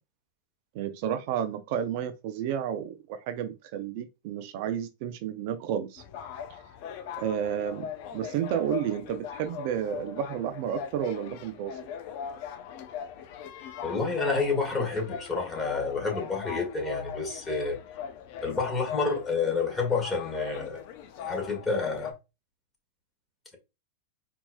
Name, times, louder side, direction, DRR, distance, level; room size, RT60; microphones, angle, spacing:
voice 1, 0.7-6.0 6.5-6.6 7.2-11.8, right 9 dB, 55° right, 0.5 m, -31 dB
sound 1, 6.0-22.1, left 8 dB, 55° left, 0.5 m, -39 dB
voice 2, 13.8-17.8 18.4-20.8 21.2-22.1, left 4 dB, 15° left, 1.7 m, -29 dB
4.3 x 3.0 x 2.2 m
hypercardioid pair, 105°, 0 cm